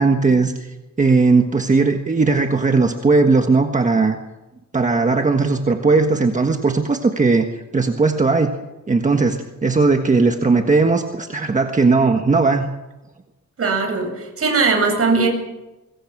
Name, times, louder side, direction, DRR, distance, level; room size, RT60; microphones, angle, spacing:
voice 1, 0.0-4.2 4.7-8.5 8.9-12.7, right 3 dB, 25° right, 4 dB, 1.5 m, -17 dB
voice 2, 13.6-15.3, right 4 dB, 50° right, 3 dB, 7.6 m, -19 dB
25.5 x 22.0 x 6.1 m, 1.0 s
wide cardioid pair, 150°, 31 cm